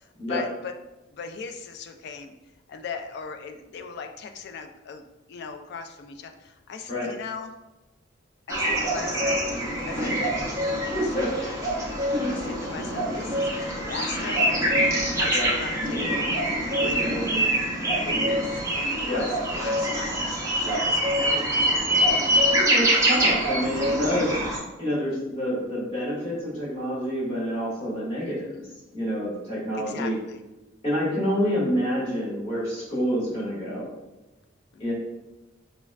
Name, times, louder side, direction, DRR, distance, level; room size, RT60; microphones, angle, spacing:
voice 1, 0.3-0.7 1.1-2.3 2.7-5.0 5.3-7.5 8.5-11.6 12.3-14.6 15.2-16.3 16.8-17.0 18.0-19.3 19.5-20.2 20.8-22.0 22.9-23.1 28.2-28.7 29.8-30.4 34.7-34.9, left 5 dB, 60° left, 6 dB, 0.3 m, -38 dB
sound 1, 8.5-24.6, right 1 dB, 15° right, 0.5 m, -25 dB
voice 2, 10.0-10.3 10.9-11.3 12.1-12.5 15.3-15.5 16.8-17.5 19.1-19.2 20.6-20.8 22.5-24.3 24.8-28.6 28.9-30.2 30.8-33.9 34.8-34.9, equal, 30° left, -8 dB, 1.5 m, -28 dB
4.1 x 2.1 x 2.3 m, 1.0 s
head